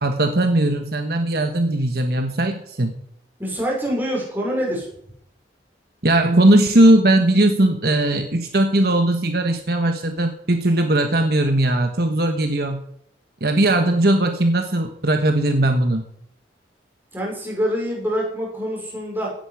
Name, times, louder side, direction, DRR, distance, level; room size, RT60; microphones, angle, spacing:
voice 1, 0.0-2.9 6.0-12.8 13.4-16.0, right 1 dB, 60° right, 5 dB, 1.3 m, -18 dB
voice 2, 3.4-4.9 17.1-19.3, equal, 10° right, -3 dB, 5.6 m, -25 dB
16.5 x 10.5 x 4.9 m, 0.69 s
head